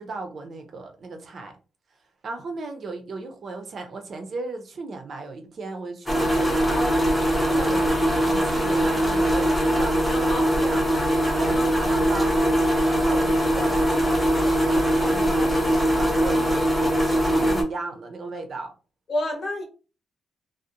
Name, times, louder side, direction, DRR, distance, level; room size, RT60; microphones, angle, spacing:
voice 1, 0.0-1.5 2.2-7.0 7.4-10.9 11.3-12.4 12.9-18.7, right 3 dB, 50° right, 0.5 m, -35 dB
sound 1, 6.1-17.6, equal, 5° left, 0.7 m, -21 dB
voice 2, 10.1-10.5 11.5-11.6 19.1-19.6, left 1 dB, 45° left, 0.7 m, -29 dB
2.5 x 2.0 x 2.8 m
cardioid pair, 130°, 0 cm